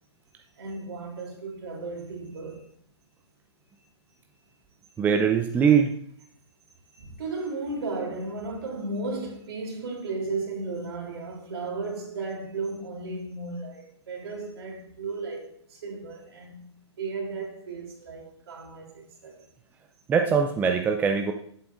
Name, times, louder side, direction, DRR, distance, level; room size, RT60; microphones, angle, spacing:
voice 1, 0.6-2.6 4.9-5.1 6.9-16.6 17.0-19.4, right 3 dB, 60° right, 3.3 m, -35 dB
voice 2, 5.0-5.9 20.1-21.3, right 6 dB, 10° right, 0.5 m, -22 dB
11.0 x 8.2 x 2.5 m
figure-of-eight pair, 125°, 15 cm